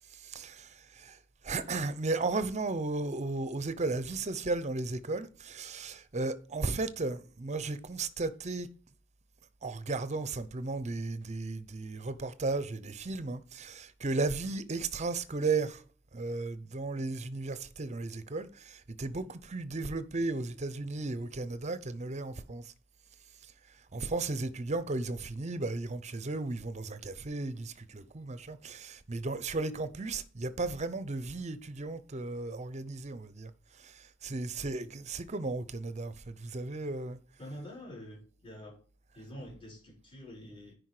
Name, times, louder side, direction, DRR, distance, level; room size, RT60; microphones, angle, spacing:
voice 1, 0.1-1.2 1.4-8.7 9.6-15.8 16.1-22.7 23.9-33.5 33.8-37.2, right 3 dB, 35° right, 0.7 m, -35 dB
voice 2, 37.4-38.8 39.1-40.8, equal, 25° left, 4.9 m, -46 dB
9.8 x 5.0 x 4.8 m
head